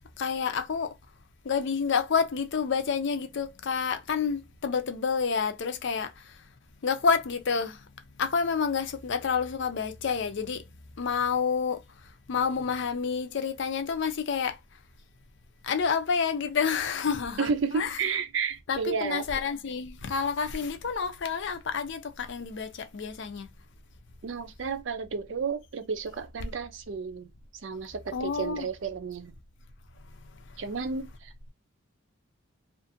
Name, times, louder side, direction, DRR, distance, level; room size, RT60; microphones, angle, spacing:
voice 1, 0.2-1.0 1.4-6.4 6.8-7.9 8.2-10.7 11.0-14.6 15.6-18.0 18.7-23.5 28.1-28.7 30.3-30.6, left 6 dB, 60° left, 0.5 m, -29 dB
voice 2, 17.4-19.2 24.2-27.3 27.6-29.3 30.6-31.5, right 5 dB, 65° right, 0.5 m, -32 dB
2.6 x 2.5 x 2.6 m
head